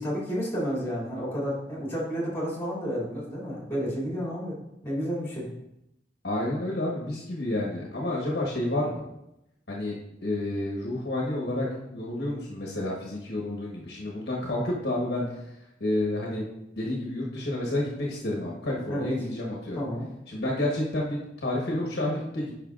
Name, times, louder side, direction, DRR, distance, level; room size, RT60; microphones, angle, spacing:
voice 1, 0.0-5.5 18.9-19.1 19.8-20.1, equal, 15° left, -6 dB, 2.6 m, -31 dB
voice 2, 6.2-9.0 9.7-10.0 10.2-15.2 15.8-16.4 16.8-19.8 20.3-22.5, left 1 dB, 65° left, -3 dB, 1.2 m, -30 dB
9.2 x 5.4 x 2.5 m, 0.85 s
head